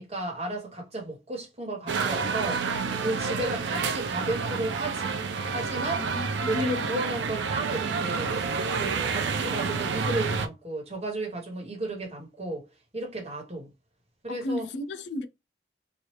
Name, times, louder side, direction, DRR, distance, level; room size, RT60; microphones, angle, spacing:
voice 1, 0.0-2.7 3.0-5.1 5.5-6.1 6.4-8.4 8.8-12.7 12.9-13.7 14.2-14.7, right 2 dB, 35° right, 1.2 m, -33 dB
sound 1, 1.9-10.5, right 5 dB, 90° right, 0.4 m, -29 dB
voice 2, 6.0-6.3 6.5-6.9 14.3-15.3, left 2 dB, 80° left, 0.4 m, -32 dB
3.1 x 2.3 x 3.1 m
head